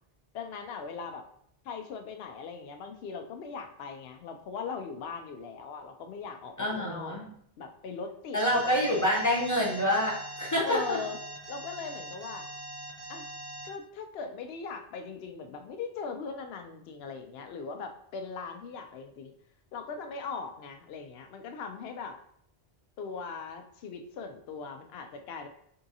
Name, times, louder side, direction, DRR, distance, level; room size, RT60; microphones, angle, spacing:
voice 1, 0.3-1.3 1.6-7.2 7.6-8.4 8.6-8.8 10.6-11.2 11.5-12.5 13.1-13.3 13.6-19.3 19.7-22.2 23.0-25.5, left 5 dB, 80° left, 6 dB, 0.8 m, -40 dB
voice 2, 6.6-7.3 8.3-11.0, equal, 20° left, -3 dB, 0.7 m, -27 dB
Alarm, 8.4-13.7, right 1 dB, 35° right, 1.0 m, -42 dB
3.8 x 3.5 x 2.7 m, 0.68 s
omnidirectional pair, 1.0 m